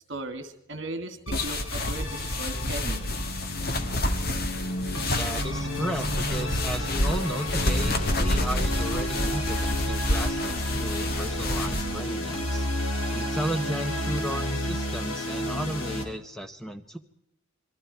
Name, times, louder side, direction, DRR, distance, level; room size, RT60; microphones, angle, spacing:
voice 1, 0.1-3.0, right 2 dB, 60° right, 8 dB, 2.8 m, -37 dB
sound 1, 1.3-16.0, left 1 dB, 85° left, 4.0 m, -31 dB
sound 2, 1.3-11.8, left 1 dB, 45° left, 1.9 m, -29 dB
voice 2, 5.2-12.7 13.1-17.0, right 1 dB, ahead, 7 dB, 0.9 m, -34 dB
27.5 x 22.5 x 4.6 m, 0.82 s
head